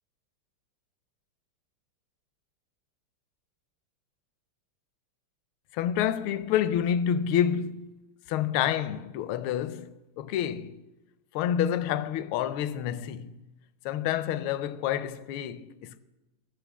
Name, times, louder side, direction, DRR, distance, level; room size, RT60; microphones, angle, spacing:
voice 1, 5.7-7.9 8.3-10.8 11.3-13.4 13.8-16.0, left 9 dB, 80° left, 1.4 m, -28 dB
11.0 x 7.5 x 7.2 m
omnidirectional pair, 2.4 m